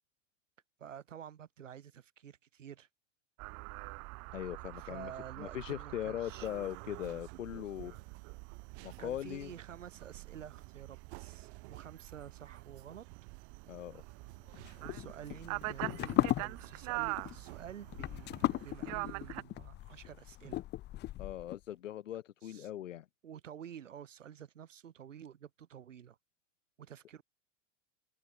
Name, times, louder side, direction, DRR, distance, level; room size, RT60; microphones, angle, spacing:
voice 1, 0.8-2.9 4.8-6.5 9.0-13.1 14.8-20.6 22.4-22.7 23.2-26.2 26.8-27.2, right 9 dB, 85° right, 3.6 m, -50 dB
sound 1, 3.4-19.4, right 30 dB, 45° right, 0.6 m, -45 dB
voice 2, 4.3-5.1 5.4-8.0 8.8-9.5 13.7-14.0 21.2-23.1, left 12 dB, 85° left, 0.8 m, -40 dB
sound 2, 6.3-18.7, right 25 dB, 60° right, 2.3 m, -56 dB
sound 3, 14.5-21.6, left 15 dB, 30° left, 0.5 m, -36 dB
hypercardioid pair, 90°, 37 cm